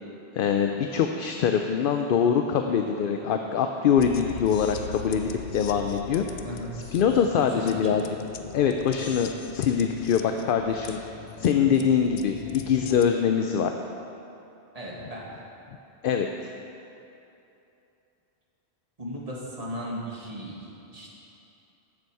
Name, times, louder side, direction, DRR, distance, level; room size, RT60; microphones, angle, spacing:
voice 1, 0.4-6.3 6.9-8.0 8.5-11.0 11.4-13.7 16.0-16.3, left 7 dB, 60° left, 5 dB, 0.6 m, -23 dB
sound 1, 4.0-13.1, left 9 dB, 85° left, 0.9 m, -40 dB
voice 2, 7.4-8.1 14.7-15.3 19.0-20.6 20.9-21.1, equal, 35° right, -4 dB, 1.8 m, -36 dB
13.0 x 7.0 x 4.7 m, 2.8 s
omnidirectional pair, 1.1 m